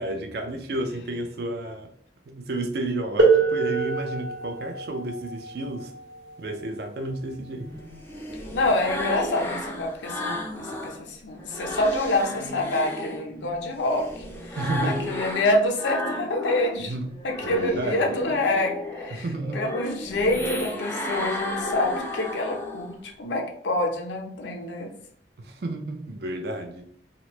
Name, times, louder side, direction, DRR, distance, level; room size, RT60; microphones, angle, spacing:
voice 1, 0.0-1.9 2.3-5.9 6.4-7.7 14.6-15.1 16.9-17.1 17.4-18.1 19.1-19.7 25.4-26.9, right 1 dB, 60° right, 0.4 m, -31 dB
sound 1, 3.2-8.6 9.7-9.8 10.6-10.8, right 4 dB, 75° right, 1.0 m, -26 dB
sound 2, 7.6-11.0 11.4-16.7 17.1-23.0, left 1 dB, 10° left, 0.4 m, -34 dB
voice 2, 8.5-14.1 14.8-16.9 17.2-19.2 19.5-24.9, left 2 dB, 85° left, 0.6 m, -26 dB
2.9 x 2.1 x 3.0 m
head